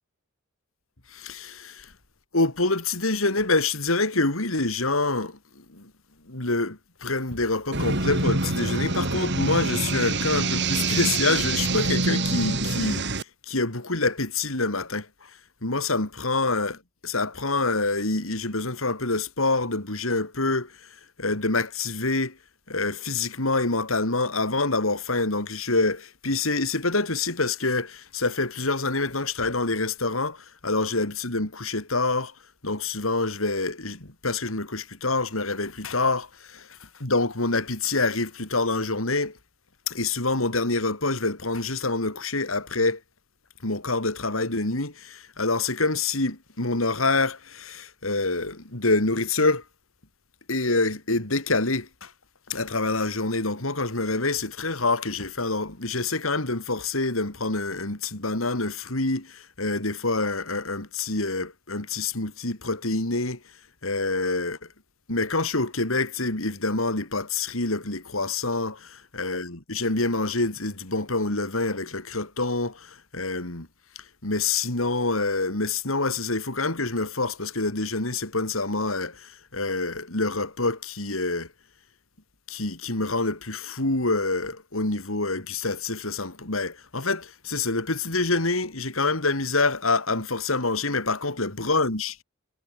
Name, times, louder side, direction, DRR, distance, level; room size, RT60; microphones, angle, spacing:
voice 1, 1.1-1.9 2.3-5.9 6.3-13.1 13.5-15.3 15.6-20.7 21.2-22.4 22.7-32.3 32.6-39.4 39.9-43.0 43.6-49.6 50.5-52.1 52.5-63.4 63.8-64.6 65.1-68.8 69.2-73.7 74.2-81.5 82.5-92.2, left 3 dB, 85° left, 4.1 m, -26 dB
sound 1, 7.7-13.2, right 3 dB, 60° right, 5.4 m, -25 dB
head